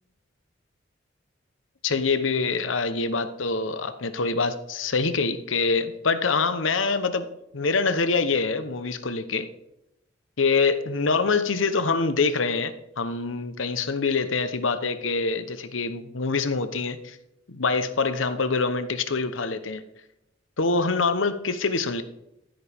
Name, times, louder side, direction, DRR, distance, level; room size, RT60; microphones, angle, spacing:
voice 1, 1.8-9.5 10.4-17.2 17.5-19.8 20.6-22.0, left 4 dB, 85° left, 1.0 m, -25 dB
15.0 x 9.0 x 3.6 m
head